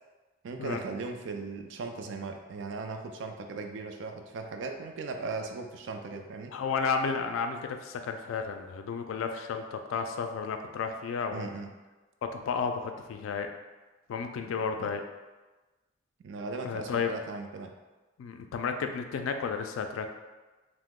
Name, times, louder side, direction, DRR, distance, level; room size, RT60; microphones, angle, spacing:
voice 1, 0.4-6.5 11.3-11.7 14.8-14.9 16.2-17.7, right 3 dB, 65° right, 5 dB, 0.3 m, -38 dB
voice 2, 6.5-11.5 12.2-13.5 14.1-15.0 16.6-17.1 18.2-20.1, left 5 dB, 90° left, 7 dB, 0.3 m, -32 dB
2.8 x 2.0 x 3.6 m, 1.2 s
head